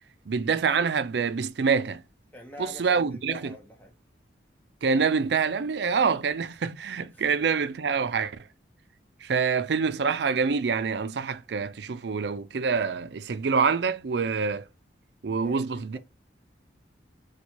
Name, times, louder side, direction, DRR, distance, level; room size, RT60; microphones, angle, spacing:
voice 1, 0.3-2.0 2.6-3.5 4.8-8.4 9.2-14.7 15.2-16.0, right 5 dB, 70° right, 0.5 m, -26 dB
voice 2, 2.3-3.9 7.1-7.2 15.4-16.0, left 1 dB, 10° left, 1.0 m, -45 dB
4.3 x 2.3 x 2.8 m
head